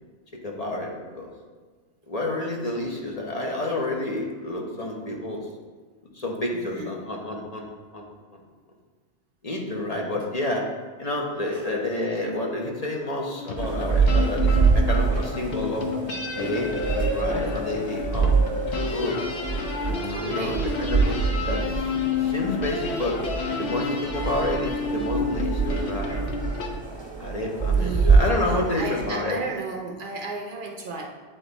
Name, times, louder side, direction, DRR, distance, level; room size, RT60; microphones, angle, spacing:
voice 1, 0.4-1.3 2.1-5.5 6.1-8.4 9.4-10.6 11.0-15.9 16.4-18.5 18.9-19.2 19.8-21.2 21.4-21.6 22.2-23.2 23.6-26.2 27.2-29.4, left 1 dB, 40° left, -1 dB, 1.0 m, -29 dB
voice 2, 6.6-7.0 11.5-11.7 20.0-20.7 27.8-28.2 28.8-31.1, right 3 dB, 55° right, 2 dB, 0.7 m, -34 dB
sound 1, 13.4-26.7, left 4 dB, 90° left, 1.1 m, -30 dB
sound 2, 13.6-29.2, right 4 dB, 30° right, 0.8 m, -25 dB
9.1 x 3.9 x 4.0 m, 1.4 s
omnidirectional pair, 1.1 m